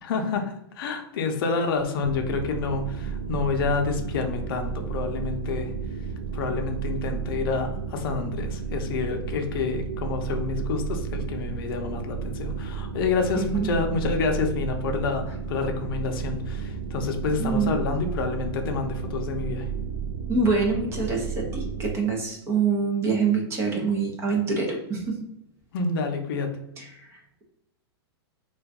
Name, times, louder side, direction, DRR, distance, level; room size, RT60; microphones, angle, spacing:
voice 1, 0.0-5.7 6.3-19.7 25.7-26.6, left 4 dB, 55° left, 4 dB, 0.6 m, -28 dB
sound 1, 2.0-21.9, right 6 dB, 65° right, 0.4 m, -32 dB
voice 2, 13.4-13.7 17.4-17.7 20.3-25.2, right 4 dB, 20° right, 0 dB, 0.6 m, -25 dB
2.5 x 2.2 x 3.5 m, 0.81 s
hypercardioid pair, 155°, 14 cm